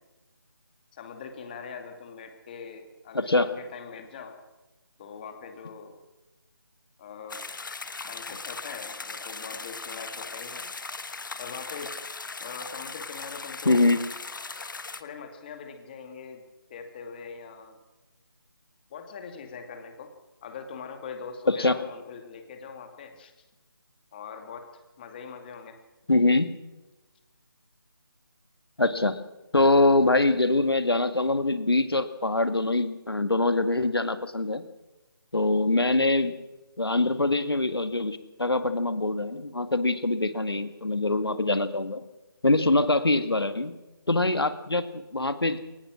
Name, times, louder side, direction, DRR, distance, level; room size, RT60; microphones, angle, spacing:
voice 1, 0.9-4.4 5.0-6.0 7.0-7.4 7.8-10.7 11.1-11.9 12.4-13.9 15.0-16.4 16.7-17.8 18.9-20.1 20.4-23.3 24.1-24.7 25.0-25.8, left 6 dB, 25° left, 6 dB, 2.4 m, -42 dB
voice 2, 3.1-3.5 13.7-14.0 21.5-21.8 26.1-26.5 28.8-29.2 29.5-34.6 35.3-36.3 36.8-42.1 42.4-43.7 44.1-45.6, left 2 dB, 80° left, 10 dB, 2.1 m, -24 dB
sound 1, 7.3-15.0, left 4 dB, 55° left, 1.5 m, -38 dB
21.5 x 19.0 x 6.3 m, 1.1 s
figure-of-eight pair, 160°, 12 cm